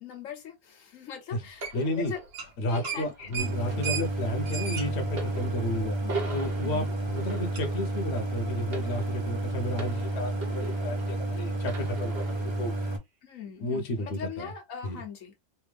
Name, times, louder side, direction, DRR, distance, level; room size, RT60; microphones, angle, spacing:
voice 1, 0.0-2.2 2.7-3.4 3.7-3.9 6.0-6.1 6.6-6.9 13.2-15.4, left 7 dB, 85° left, 1.3 m, -41 dB
sound 1, 1.6-11.3 11.6-12.7 13.5-13.6, right 3 dB, 50° right, 1.2 m, -41 dB
sound 2, 1.6-2.0 2.3-2.5 2.8-6.2 6.6-6.7 7.6-7.7, right 7 dB, 80° right, 1.3 m, -36 dB
voice 2, 1.7-2.1 2.6-6.0 6.3-13.0 13.6-14.5 14.8-15.0, left 1 dB, 60° left, 1.1 m, -33 dB
Idling, 3.4-13.0, right 1 dB, 25° right, 0.9 m, -31 dB
3.4 x 2.7 x 3.2 m
omnidirectional pair, 1.3 m